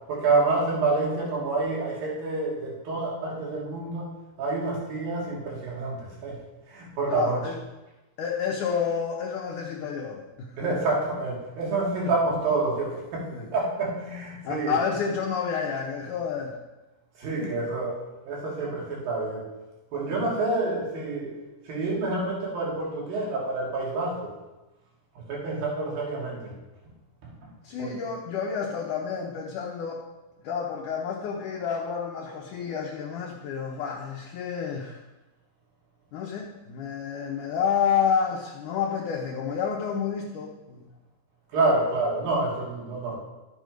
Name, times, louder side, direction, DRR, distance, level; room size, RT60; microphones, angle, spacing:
voice 1, 0.1-4.1 4.4-6.4 6.7-7.5 10.6-14.8 17.2-19.5 19.9-21.4 21.7-24.3 25.3-26.6 27.2-27.3 27.8-28.0 41.5-43.2, right 3 dB, 65° right, -4 dB, 4.3 m, -28 dB
voice 2, 7.1-7.6 8.2-10.8 13.3-13.5 14.4-16.6 17.4-17.6 20.1-20.3 27.6-30.0 30.4-35.0 36.1-40.9, left 6 dB, 70° left, -1 dB, 2.1 m, -29 dB
13.0 x 8.1 x 5.2 m, 1.1 s
omnidirectional pair, 4.5 m